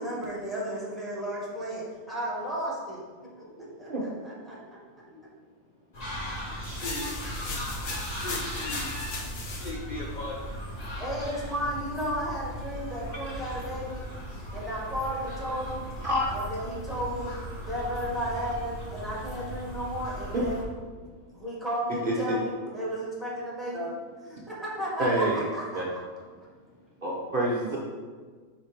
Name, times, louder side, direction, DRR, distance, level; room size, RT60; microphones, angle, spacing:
voice 1, 0.0-3.0 3.4-4.6 5.1-5.2 11.0-14.0 14.5-15.8 16.3-17.3 17.7-20.6 21.3-23.9 24.2-26.0, equal, ahead, -6 dB, 1.7 m, -33 dB
sound 1, 5.9-20.6, equal, 30° left, 1.1 m, -38 dB
sound 2, 6.6-9.7, left 3 dB, 75° left, 1.3 m, -37 dB
voice 2, 6.6-7.1 8.1-8.8 9.4-10.3, left 2 dB, 45° left, -1 dB, 0.6 m, -38 dB
voice 3, 22.0-22.3 23.7-23.9 25.0-25.5 25.7-25.8 27.0-27.8, right 1 dB, 45° right, -4 dB, 0.9 m, -27 dB
5.2 x 4.9 x 4.3 m, 1.5 s
omnidirectional pair, 1.4 m